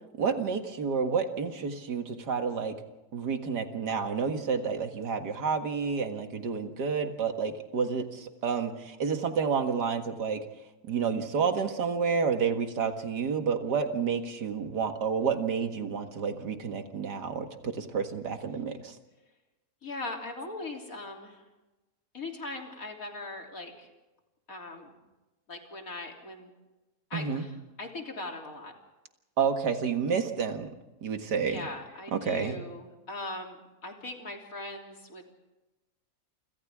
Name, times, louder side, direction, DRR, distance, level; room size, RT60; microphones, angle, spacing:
voice 1, 0.2-2.8 3.1-10.4 10.8-19.0 27.1-27.4 29.4-30.7 31.0-31.6 32.1-32.6, right 6 dB, 90° right, 6 dB, 2.3 m, -30 dB
voice 2, 19.8-21.4 22.1-23.9 24.5-25.0 25.5-26.5 27.1-28.7 31.4-35.2, left 2 dB, 55° left, 1 dB, 3.7 m, -40 dB
28.5 x 26.5 x 3.7 m, 1.1 s
omnidirectional pair, 1.7 m